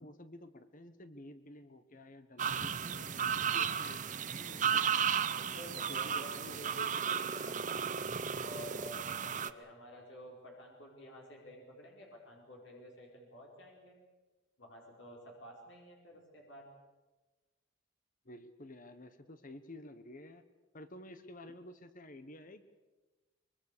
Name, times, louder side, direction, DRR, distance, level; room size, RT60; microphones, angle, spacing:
voice 1, 0.0-4.8 5.9-6.6 18.2-20.4 20.7-22.7, left 1 dB, 40° left, 10 dB, 1.2 m, -51 dB
sound 1, 2.4-9.5, right 7 dB, 35° right, 0.7 m, -34 dB
voice 2, 5.4-8.1 8.4-13.9 14.6-16.6, equal, 60° left, -1 dB, 4.6 m, -51 dB
24.0 x 22.5 x 6.8 m, 1.2 s
head